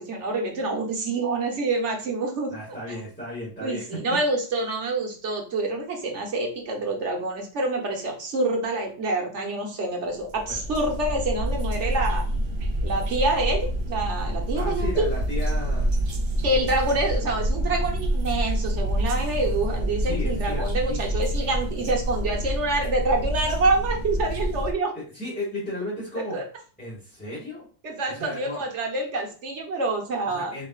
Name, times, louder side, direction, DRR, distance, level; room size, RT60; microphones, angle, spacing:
voice 1, 0.0-2.5 2.9-3.0 3.6-12.3 12.8-15.0 16.4-24.9 26.1-26.4 27.8-30.5, right 2 dB, 85° right, 1 dB, 1.4 m, -27 dB
voice 2, 2.5-4.0 10.5-10.6 14.6-15.9 20.0-21.0 24.9-26.4 26.8-27.7 28.1-28.6 30.3-30.7, left 1 dB, 10° left, -9 dB, 1.9 m, -34 dB
sound 1, 10.2-24.7, equal, 65° right, 1.0 m, -27 dB
6.7 x 3.0 x 2.4 m, 0.39 s
omnidirectional pair, 1.2 m